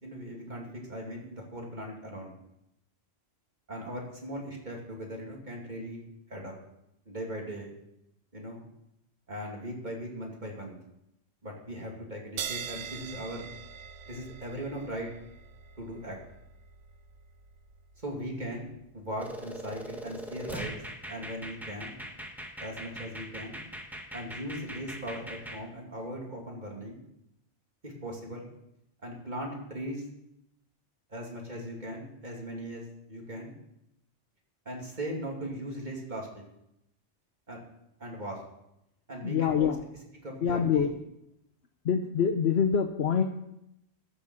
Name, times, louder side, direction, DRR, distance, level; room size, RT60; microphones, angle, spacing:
voice 1, 0.0-2.3 3.7-6.0 6.3-6.5 7.1-7.7 8.3-8.6 9.3-10.8 11.4-13.5 14.1-15.1 15.8-16.2 18.0-20.8 21.1-22.0 22.6-23.6 24.1-27.0 27.8-28.5 29.0-30.1 31.1-33.5 34.6-36.4 37.5-37.6 38.0-38.4 39.1-39.7 40.2-40.8, equal, 40° right, -1 dB, 2.7 m, -39 dB
sound 1, 12.4-19.4, right 7 dB, 90° right, 1.0 m, -43 dB
sound 2, 19.2-25.6, right 1 dB, ahead, 1.4 m, -41 dB
voice 2, 39.2-39.8 40.4-40.9 41.8-43.2, left 7 dB, 70° left, 6 dB, 1.0 m, -25 dB
14.5 x 7.2 x 7.1 m, 0.83 s
omnidirectional pair, 1.1 m